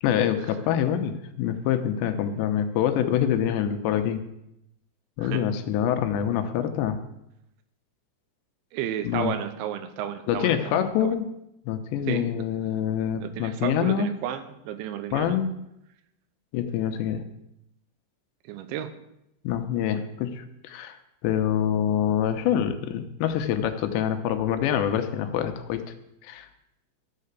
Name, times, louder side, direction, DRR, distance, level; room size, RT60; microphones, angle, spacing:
voice 1, 0.0-4.2 5.2-7.0 9.0-9.3 10.3-11.3 11.7-14.1 15.1-15.5 16.5-17.2 19.4-21.0 21.2-25.8 26.2-26.5, left 9 dB, 85° left, 8 dB, 3.0 m, -25 dB
voice 2, 8.7-11.2 12.1-12.5 13.1-15.4 18.4-19.0, right 10 dB, 85° right, 10 dB, 3.2 m, -33 dB
14.0 x 6.6 x 8.2 m, 0.84 s
omnidirectional pair, 5.2 m